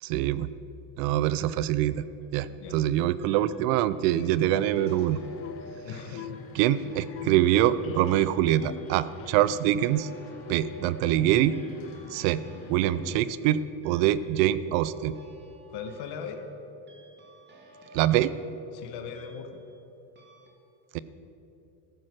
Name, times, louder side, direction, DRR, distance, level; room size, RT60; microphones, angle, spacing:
voice 1, 0.0-0.5 1.0-2.0 2.3-5.2 6.5-10.1 10.5-11.6 12.1-12.4 12.7-15.2 17.9-18.3 20.9-21.0, right 12 dB, 80° right, 16 dB, 0.7 m, -24 dB
sound 1, 1.9-2.4 3.2-3.8 4.1-19.9 20.2-20.5, right 1 dB, 20° right, 1.9 m, -53 dB
voice 2, 2.5-2.8 5.8-6.4 15.7-16.5 18.7-19.6, left 6 dB, 55° left, 6 dB, 1.3 m, -39 dB
sound 2, 4.1-13.3, left 7 dB, 30° left, 0.4 m, -44 dB
14.0 x 7.6 x 6.2 m, 3.0 s
supercardioid pair, 120°, 48 cm